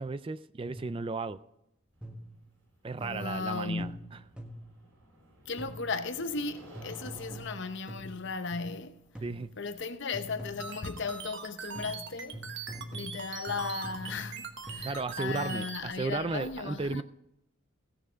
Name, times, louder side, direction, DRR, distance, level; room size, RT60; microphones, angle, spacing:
voice 1, 0.0-1.4 2.8-3.9 9.2-9.5 14.8-17.0, right 3 dB, 25° right, 0.3 m, -34 dB
sound 1, 0.7-1.1 2.0-2.5 3.0-4.8 5.6-6.0 6.7-8.8 9.1-9.6 10.1-10.9 11.7-15.7, equal, 5° right, 1.5 m, -45 dB
sound 2, 1.9-10.8, equal, 75° right, 5.3 m, -56 dB
voice 2, 3.0-4.2 5.5-9.0 9.6-17.0, left 4 dB, 55° left, 0.8 m, -36 dB
sound 3, 10.6-15.8, right 6 dB, 55° right, 1.2 m, -41 dB
17.0 x 6.8 x 5.0 m
head